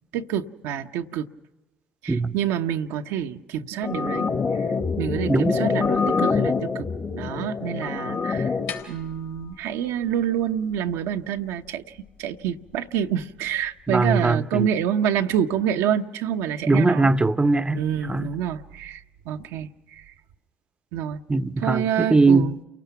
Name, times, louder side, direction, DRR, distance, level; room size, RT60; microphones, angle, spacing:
voice 1, 0.1-1.3 2.0-4.3 5.0-6.9 7.1-8.5 8.9-11.8 12.2-17.1 17.7-20.0 20.9-21.2 21.6-22.5, right 9 dB, 80° right, 0.8 m, -27 dB
sound 1, 3.8-8.8, left 5 dB, 35° left, 1.6 m, -25 dB
voice 2, 5.3-5.6 13.9-14.7 16.7-17.8 18.1-18.3 21.3-22.6, right 3 dB, 20° right, 0.7 m, -20 dB
sound 2, 8.4-14.4, left 7 dB, 80° left, 3.6 m, -46 dB
28.5 x 18.0 x 5.8 m
hypercardioid pair, 60°, 5 cm